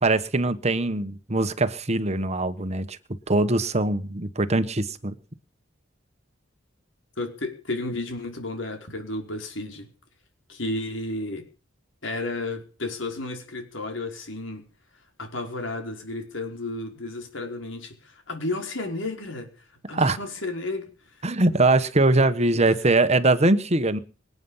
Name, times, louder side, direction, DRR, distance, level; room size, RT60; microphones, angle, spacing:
voice 1, 0.0-3.0 3.3-5.1 19.9-20.2 21.2-24.0, right 2 dB, 35° right, 11 dB, 1.3 m, -22 dB
voice 2, 7.2-9.9 10.5-11.4 12.0-14.6 15.2-19.5 19.9-20.9 22.2-22.3, left 2 dB, 75° left, 4 dB, 5.1 m, -32 dB
25.5 x 9.5 x 5.7 m, 0.37 s
head